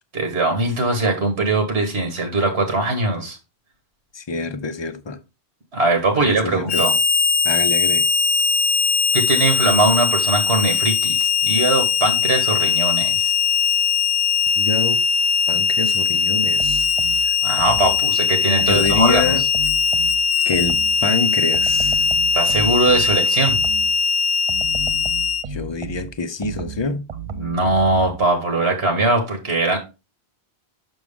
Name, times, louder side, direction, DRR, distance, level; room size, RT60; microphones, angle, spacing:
voice 1, 0.1-3.4 5.7-6.9 9.1-13.3 17.4-19.3 22.3-23.6 27.3-29.8, right 2 dB, 80° right, 1.6 m, -20 dB
voice 2, 4.1-5.2 6.2-6.8 7.4-8.1 14.6-15.0 15.5-16.9 17.2-17.4 18.6-19.4 20.5-22.1 25.5-27.1, left 4 dB, 35° left, 0.5 m, -26 dB
Harmonica, 6.7-25.4, left 5 dB, 65° left, 0.8 m, -20 dB
sound 1, 16.6-18.1 18.6-21.1 21.5-24.0 24.5-28.3, right 4 dB, 45° right, 0.5 m, -34 dB
6.2 x 6.1 x 3.5 m
omnidirectional pair, 1.1 m